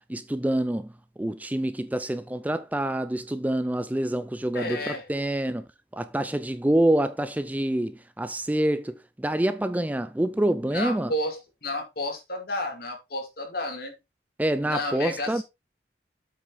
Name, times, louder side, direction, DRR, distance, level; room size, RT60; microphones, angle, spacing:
voice 1, 0.1-0.9 1.2-5.7 5.9-11.1 14.4-15.4, right 1 dB, 10° right, 0.4 m, -26 dB
voice 2, 4.5-5.1 10.7-13.9 14.6-15.4, left 1 dB, 60° left, 2.7 m, -31 dB
7.8 x 5.9 x 4.0 m
head